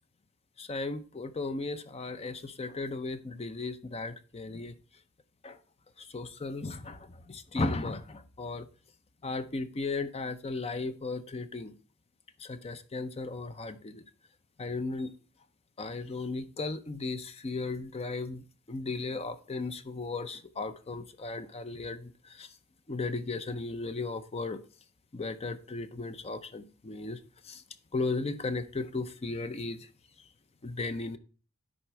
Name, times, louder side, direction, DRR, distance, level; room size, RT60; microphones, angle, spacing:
voice 1, 0.6-4.8 5.4-5.6 6.0-8.7 9.2-11.7 12.4-14.0 14.6-15.1 15.8-22.5 22.9-24.6 25.1-27.6 27.9-29.9 30.6-31.2, left 3 dB, 30° left, 0.5 m, -36 dB
10.0 x 4.1 x 4.5 m
head